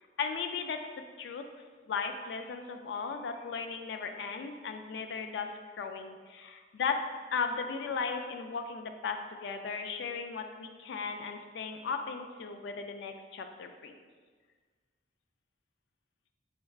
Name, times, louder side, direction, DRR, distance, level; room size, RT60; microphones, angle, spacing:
voice 1, 0.2-0.9 1.2-1.4 1.9-13.9, left 5 dB, 75° left, 6 dB, 0.3 m, -36 dB
4.5 x 3.3 x 2.3 m, 1.5 s
head